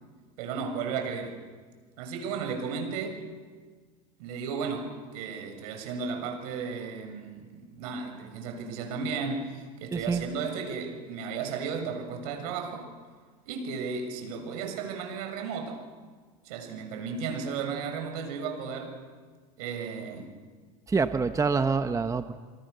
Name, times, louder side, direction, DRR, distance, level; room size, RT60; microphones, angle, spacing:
voice 1, 0.4-1.4 2.0-3.2 4.2-12.9 13.5-15.8 16.4-19.0 19.6-20.3, right 5 dB, 80° right, 5 dB, 7.1 m, -34 dB
voice 2, 9.9-10.2 20.9-22.3, right 4 dB, 15° right, 9 dB, 1.2 m, -26 dB
27.5 x 27.5 x 6.9 m, 1.5 s
supercardioid pair, 110°, 19 cm